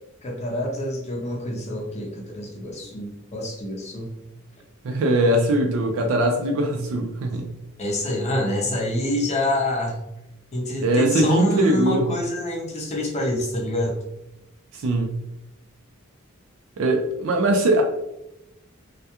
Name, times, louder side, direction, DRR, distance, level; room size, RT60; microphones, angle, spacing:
voice 1, 0.2-4.1 7.8-10.0 10.5-14.0, left 1 dB, 30° left, -1 dB, 0.5 m, -26 dB
voice 2, 4.8-7.5 10.8-12.1 14.7-15.2 16.8-17.8, right 1 dB, 65° right, 3 dB, 0.4 m, -21 dB
2.3 x 2.1 x 2.8 m, 0.89 s
head